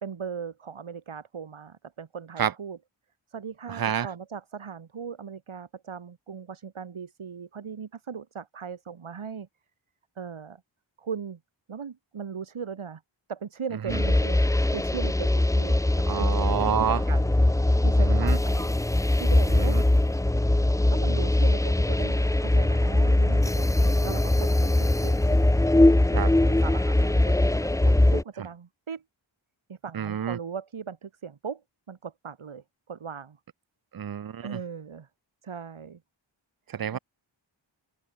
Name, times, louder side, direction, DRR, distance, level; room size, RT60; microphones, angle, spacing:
voice 1, 0.0-2.8 3.3-9.5 10.2-10.6 11.0-11.4 11.7-13.0 13.3-16.5 16.8-17.3 17.8-18.8 19.2-19.8 20.9-29.0 29.7-33.4 34.4-35.1 35.4-36.0 36.9-37.0, right 6 dB, 85° right, 1.8 m, -38 dB
voice 2, 3.7-4.1 13.9-14.0 16.1-17.0 18.0-18.4 19.5-19.8 26.1-26.3 29.9-30.4 33.9-34.6 36.7-37.0, right 9 dB, 50° right, 0.6 m, -28 dB
sound 1, 13.9-28.2, left 1 dB, 5° left, 0.5 m, -22 dB
wide cardioid pair, 60°, 48 cm